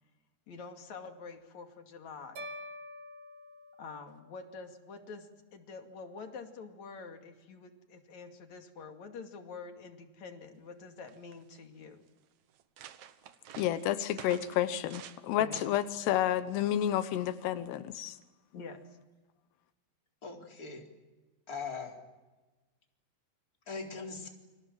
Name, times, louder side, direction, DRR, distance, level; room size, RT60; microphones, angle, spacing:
voice 1, 0.5-2.5 3.8-12.0 15.4-15.6 18.5-19.0, left 4 dB, 50° left, 5 dB, 3.4 m, -47 dB
sound 1, 2.4-4.6, left 1 dB, 45° right, 2.6 m, -47 dB
sound 2, 10.7-10.8 11.0-11.6 12.2-12.3 12.5-15.2 15.5-15.9 16.7-17.0, right 10 dB, 65° right, 1.9 m, -50 dB
voice 2, 13.6-18.2, left 11 dB, 90° left, 12 dB, 3.2 m, -30 dB
voice 3, 20.2-20.8 21.5-21.9 23.7-24.3, left 4 dB, 20° left, 2 dB, 4.1 m, -40 dB
29.5 x 26.0 x 7.7 m, 1.2 s
omnidirectional pair, 4.6 m